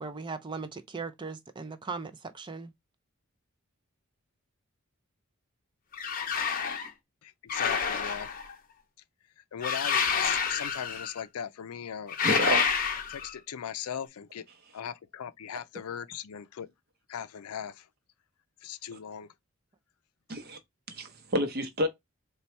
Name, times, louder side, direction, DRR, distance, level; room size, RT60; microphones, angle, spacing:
voice 1, 0.0-2.7, right 4 dB, 20° right, 0.3 m, -38 dB
sound 1, 5.9-6.9 7.5-8.5 9.6-11.2 12.1-13.3, left 6 dB, 40° left, 0.6 m, -28 dB
voice 2, 7.2-8.3 9.4-12.2 13.1-14.5 14.7-16.7 17.1-17.9 18.6-19.3, left 8 dB, 85° left, 0.4 m, -39 dB
voice 3, 12.2-12.6 18.9-19.0 20.3-20.6 20.9-21.9, equal, 45° right, 0.8 m, -29 dB
4.1 x 2.3 x 4.3 m
head